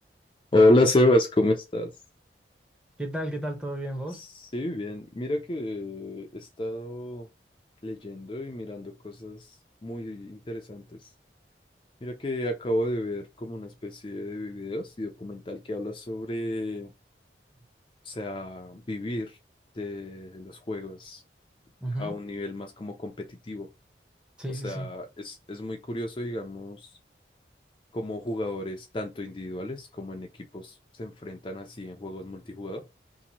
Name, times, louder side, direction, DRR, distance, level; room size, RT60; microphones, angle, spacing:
voice 1, 0.5-1.9 4.5-7.3 7.8-9.4 9.8-10.8 12.0-16.9 18.1-19.3 19.8-21.2 22.0-23.1 23.5-23.7 24.6-26.8 27.9-30.3 30.5-30.7 31.0-32.8, left 1 dB, 30° left, 0.5 m, -29 dB
voice 2, 3.0-4.2 21.8-22.2 24.4-24.9, right 1 dB, 5° right, 0.8 m, -33 dB
2.9 x 2.6 x 4.0 m
head